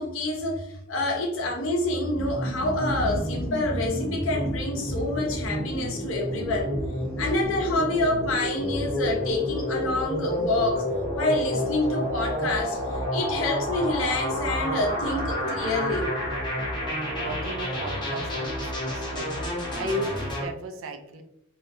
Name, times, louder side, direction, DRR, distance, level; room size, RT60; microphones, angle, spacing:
voice 1, 0.0-6.7 7.2-10.8 11.1-16.1, left 2 dB, 75° left, 0 dB, 0.7 m, -27 dB
sound 1, 2.2-20.4, equal, 25° left, 0.7 m, -30 dB
voice 2, 17.2-21.2, equal, 80° right, 6 dB, 0.4 m, -35 dB
2.4 x 2.0 x 2.8 m, 0.78 s
head